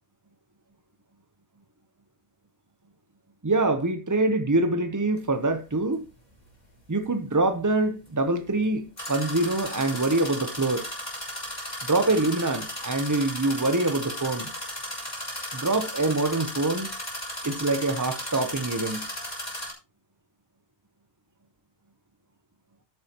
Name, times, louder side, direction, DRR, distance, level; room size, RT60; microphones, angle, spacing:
voice 1, 3.4-6.1 6.9-10.9 11.8-14.5 15.5-16.9 17.4-19.1, right 2 dB, 25° right, 0.4 m, -25 dB
sound 1, 5.2-5.3 9.0-19.7, left 1 dB, 30° left, 4.6 m, -35 dB
12.5 x 9.3 x 2.9 m
omnidirectional pair, 1.4 m